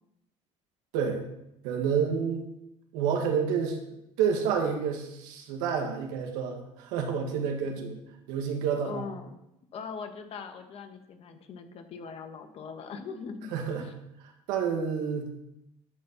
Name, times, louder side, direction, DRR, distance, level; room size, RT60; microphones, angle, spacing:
voice 1, 1.6-2.5 2.9-3.8 4.2-8.0 8.3-9.0 13.5-13.9 14.5-15.3, right 6 dB, 85° right, 2 dB, 2.1 m, -29 dB
voice 2, 8.8-9.4 9.7-13.5 13.8-13.9, left 5 dB, 50° left, 6 dB, 1.5 m, -41 dB
13.0 x 4.5 x 6.9 m, 0.85 s
supercardioid pair, 105°, 13 cm